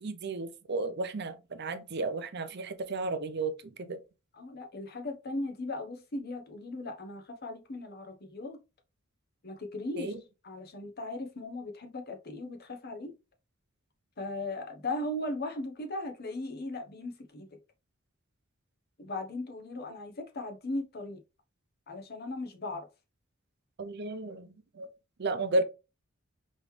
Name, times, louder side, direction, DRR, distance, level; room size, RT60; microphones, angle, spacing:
voice 1, 0.0-4.0 10.0-10.1 23.8-24.5 24.8-24.9 25.2-25.6, right 2 dB, 55° right, 0.6 m, -33 dB
voice 2, 4.3-8.6 9.4-10.1 10.4-13.1 14.2-17.5 19.0-21.2 21.9-22.9, left 2 dB, 50° left, 1.0 m, -38 dB
5.2 x 3.2 x 3.2 m
head